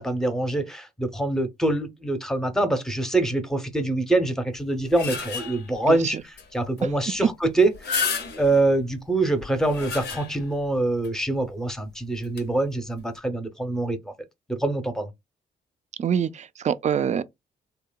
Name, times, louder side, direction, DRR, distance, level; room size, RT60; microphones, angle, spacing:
voice 1, 0.0-6.2 6.5-8.0 8.4-14.1 14.5-15.1, right 2 dB, 5° left, 0.7 m, -25 dB
sound 1, 4.6-5.8 6.4-6.5 6.8-6.9 7.6-8.7 9.4-10.6 11.0-11.1 12.2-12.4, left 5 dB, 80° left, 0.7 m, -31 dB
voice 2, 5.8-6.2 6.8-7.3 16.0-17.2, right 8 dB, 40° right, 0.4 m, -25 dB
2.8 x 2.1 x 2.2 m
supercardioid pair, 55°, 18 cm